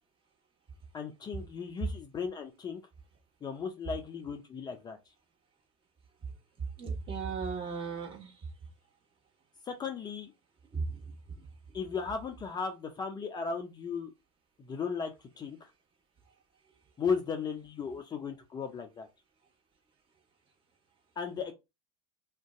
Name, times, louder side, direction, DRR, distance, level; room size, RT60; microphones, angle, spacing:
voice 1, 0.9-2.8 3.4-5.0 9.6-10.3 11.7-14.1 14.6-15.7 17.0-19.1 21.2-21.5, left 5 dB, 25° left, 0.5 m, -36 dB
voice 2, 6.8-8.3 10.7-11.1, right 5 dB, 30° right, 1.3 m, -36 dB
2.5 x 2.2 x 3.6 m
hypercardioid pair, 95°, 17 cm